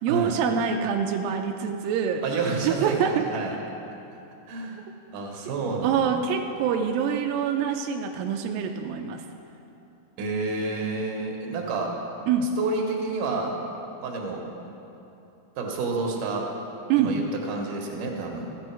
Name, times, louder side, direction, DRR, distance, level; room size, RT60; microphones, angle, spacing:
voice 1, 0.0-2.2 2.6-3.3 5.8-9.2 12.3-12.6 16.9-17.2, right 7 dB, 85° right, 4 dB, 2.0 m, -25 dB
voice 2, 2.2-3.5 4.5-4.8 5.1-6.1 10.2-11.9 12.6-13.6 14.0-14.4 15.6-16.5 17.0-17.2 17.5-18.5, right 3 dB, 65° right, 0 dB, 2.6 m, -29 dB
14.0 x 8.9 x 4.6 m, 2.9 s
omnidirectional pair, 4.6 m